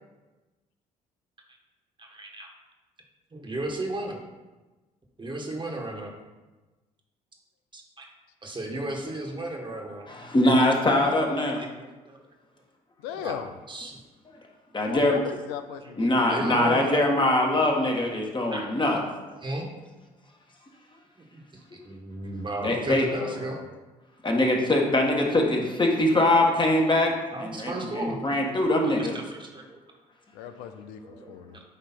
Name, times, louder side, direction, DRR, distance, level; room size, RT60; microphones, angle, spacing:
voice 1, 2.0-2.5 3.3-4.2 5.2-6.1 7.7-8.1 8.4-10.1 12.0-12.2 13.2-13.3 13.7-14.0 16.3-17.0 18.5-18.7 19.4-19.7 21.2-21.3 21.7-23.6 27.3-28.2 29.0-29.8 31.0-31.6, right 2 dB, 25° right, 1 dB, 1.6 m, -34 dB
voice 2, 10.1-11.6 14.7-15.2 16.0-19.0 22.6-23.0 24.2-27.1 27.4-29.1, left 1 dB, 25° left, 1 dB, 1.6 m, -23 dB
voice 3, 13.0-13.5 14.9-16.6 22.3-23.6 30.3-31.6, left 8 dB, 80° left, 9 dB, 0.6 m, -38 dB
8.8 x 3.1 x 4.4 m, 1.2 s
hypercardioid pair, 55°, 17 cm